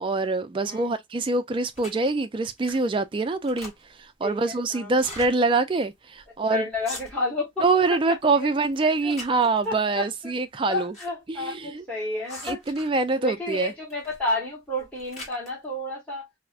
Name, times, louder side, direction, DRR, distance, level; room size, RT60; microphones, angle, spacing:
voice 1, 0.0-3.7 4.2-6.6 7.6-10.9 11.3-11.8 12.4-13.7, right 3 dB, 25° right, 0.3 m, -24 dB
voice 2, 0.6-1.0 4.2-5.0 6.5-7.6 7.9-8.0 8.3-8.5 9.0-9.1 9.6-10.1 10.7-12.6 13.1-16.3, left 2 dB, 5° left, 0.9 m, -31 dB
sound 1, 1.7-2.1 2.6-2.9 3.2-4.1 4.9-5.3 5.8-5.9 6.1-6.4 6.7-7.4 7.8-8.3 8.7-9.7 10.5-11.1 11.3-11.4 12.3-13.0 13.9-14.2 14.7-15.5, left 1 dB, 30° left, 1.4 m, -42 dB
4.5 x 2.1 x 2.4 m
head